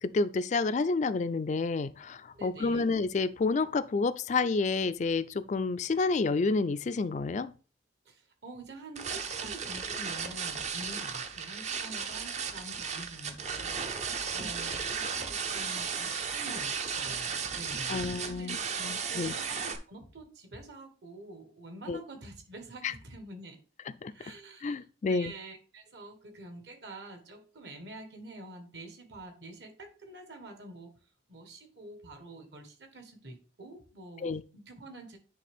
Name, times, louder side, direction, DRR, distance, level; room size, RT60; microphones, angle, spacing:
voice 1, 0.0-7.5 17.9-19.3 21.9-22.0 22.8-22.9 24.0-24.1 24.6-25.3 34.2-34.4, left 4 dB, 40° left, 0.3 m, -29 dB
voice 2, 2.3-2.9 8.0-13.8 14.3-18.5 19.1-23.6 24.1-24.7 25.0-30.9 31.3-35.2, right 2 dB, 60° right, 1.3 m, -47 dB
sound 1, 9.0-19.8, right 6 dB, 35° right, 0.5 m, -35 dB
10.0 x 3.4 x 3.5 m
head